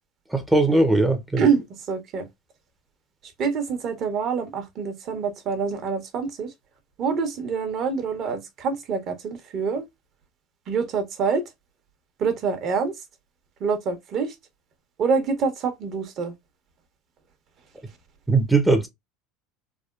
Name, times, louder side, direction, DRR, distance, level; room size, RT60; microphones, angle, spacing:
voice 1, 0.3-1.4 18.3-18.9, right 2 dB, 5° right, 0.6 m, -19 dB
voice 2, 1.4-2.3 3.4-6.5 7.0-9.8 10.7-11.4 12.2-13.0 13.6-14.3 15.0-16.3, right 5 dB, 45° right, 0.9 m, -26 dB
3.4 x 2.2 x 2.3 m
supercardioid pair, 110°, 0 cm